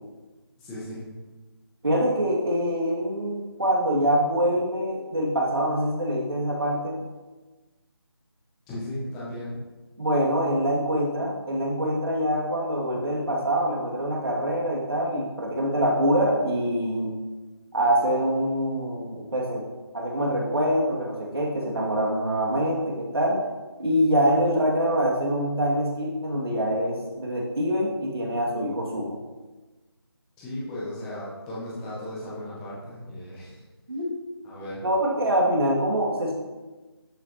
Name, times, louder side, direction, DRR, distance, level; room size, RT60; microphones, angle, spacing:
voice 1, 0.6-1.0 8.7-9.6 30.4-33.6 34.4-34.8, left 1 dB, 5° left, -8 dB, 0.6 m, -36 dB
voice 2, 1.8-7.0 10.0-17.1 17.7-19.7 19.9-23.4 23.8-29.1 33.9-34.1 34.8-36.3, equal, 65° right, -3 dB, 2.5 m, -25 dB
11.5 x 6.0 x 3.0 m, 1.2 s
figure-of-eight pair, 170°, 14 cm